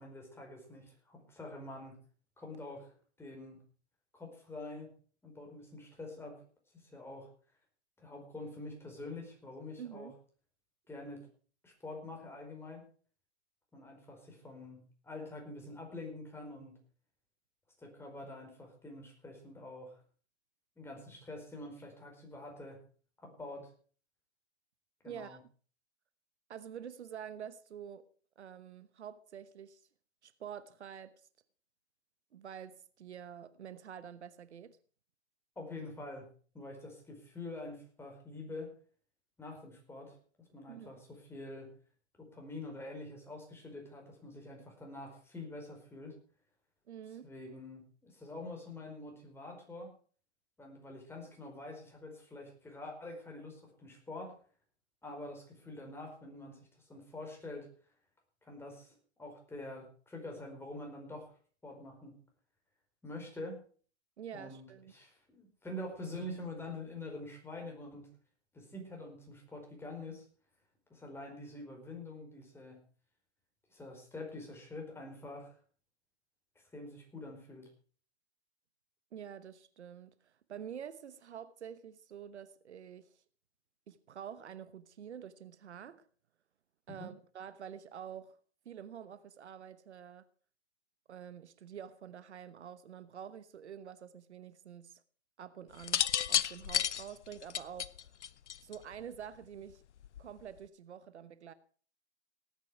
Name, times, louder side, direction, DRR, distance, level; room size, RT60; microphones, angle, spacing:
voice 1, 0.0-2.0 2.4-3.6 4.1-4.9 5.2-6.4 6.7-7.3 8.0-10.1 10.9-11.3 11.6-12.8 13.7-16.8 17.8-20.0 20.8-22.8 23.2-23.7 25.0-25.4 35.6-36.3 36.5-38.7 39.4-40.2 40.5-41.7 42.2-46.2 47.2-49.9 50.6-54.4 55.0-57.7 58.4-61.3 61.6-62.2 63.0-63.6 64.3-68.1 68.5-70.2 70.9-72.8 73.7-75.5 76.7-77.7 86.9-87.1, left 2 dB, 5° left, 4.7 m, -46 dB
voice 2, 9.8-10.1 25.0-25.4 26.5-28.0 28.4-29.8 30.2-31.2 32.3-34.8 40.7-41.0 46.9-47.3 64.2-64.9 79.1-83.1 83.9-86.1 86.9-88.4 88.6-90.2 91.1-95.0 95.4-96.0 96.3-97.9 98.6-99.8 100.2-101.5, right 8 dB, 75° right, 1.1 m, -47 dB
sound 1, 95.8-98.9 100.0-100.4, left 9 dB, 80° left, 0.7 m, -32 dB
18.5 x 9.5 x 4.8 m
hypercardioid pair, 120°, 34 cm